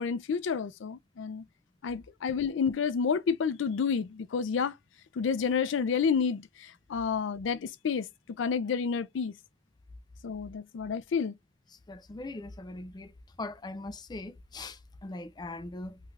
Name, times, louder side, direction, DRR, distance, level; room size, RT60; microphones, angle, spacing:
voice 1, 0.0-1.4 1.8-4.7 5.1-8.1 8.4-9.3 10.2-11.3, left 6 dB, 85° left, 0.4 m, -30 dB
voice 2, 11.9-13.1 13.4-16.0, left 2 dB, 25° left, 0.4 m, -40 dB
3.2 x 2.4 x 3.2 m
head